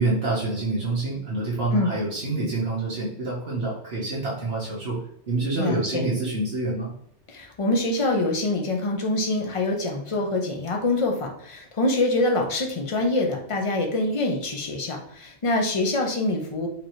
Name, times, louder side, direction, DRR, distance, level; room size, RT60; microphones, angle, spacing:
voice 1, 0.0-5.0 5.3-6.9, right 2 dB, 60° right, -5 dB, 1.4 m, -27 dB
voice 2, 5.6-6.1 7.3-16.7, left 2 dB, 30° left, 2 dB, 0.7 m, -25 dB
5.0 x 3.0 x 3.0 m, 0.67 s
omnidirectional pair, 1.2 m